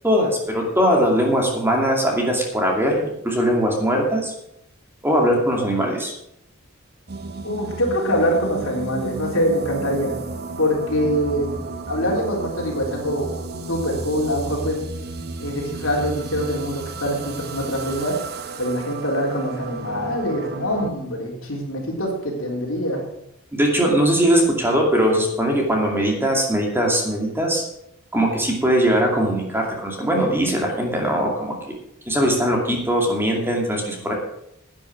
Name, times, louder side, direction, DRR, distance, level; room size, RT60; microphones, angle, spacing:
voice 1, 0.0-4.3 5.0-6.1 23.5-27.6 28.1-31.5 32.1-34.1, equal, 10° right, 0 dB, 2.5 m, -20 dB
sound 1, 7.1-20.9, right 3 dB, 50° right, 0.9 m, -33 dB
voice 2, 7.4-10.2 10.6-11.6 11.9-13.3 13.7-14.8 15.4-18.2 18.6-23.0, equal, 70° left, -1 dB, 3.6 m, -24 dB
11.0 x 9.3 x 6.1 m, 0.77 s
head